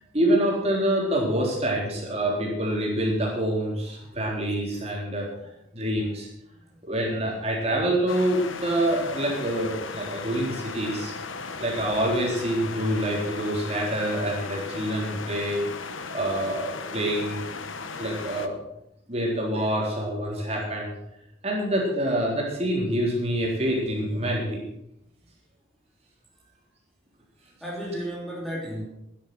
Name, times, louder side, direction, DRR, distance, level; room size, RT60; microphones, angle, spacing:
voice 1, 0.1-5.3 5.7-6.3 6.8-11.1 11.6-15.6 16.1-17.4 18.0-18.6 19.1-21.0 21.4-24.6, right 1 dB, 30° right, -2 dB, 3.9 m, -26 dB
sound 1, 8.1-18.5, left 4 dB, 90° left, 1.1 m, -36 dB
voice 2, 27.4-28.8, equal, ahead, -4 dB, 3.0 m, -35 dB
13.0 x 10.5 x 6.3 m, 0.83 s
head